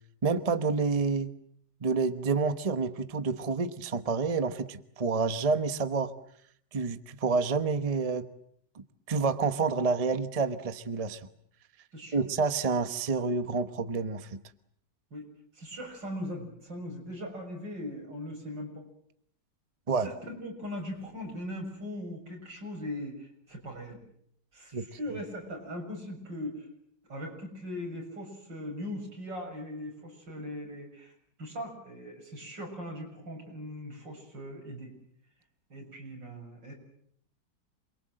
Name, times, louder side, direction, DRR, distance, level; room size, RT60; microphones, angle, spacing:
voice 1, 0.2-1.3 1.8-6.1 6.7-8.3 9.1-11.2 12.1-14.4 19.9-20.1 24.7-24.8, right 4 dB, 25° right, 11 dB, 1.0 m, -28 dB
voice 2, 11.9-12.2 15.1-15.3 15.5-18.9 20.0-24.0 24.5-26.7 27.1-31.1 31.4-34.9 35.7-36.7, left 1 dB, 85° right, 2 dB, 7.5 m, -40 dB
27.5 x 23.0 x 7.8 m, 0.68 s
omnidirectional pair, 1.9 m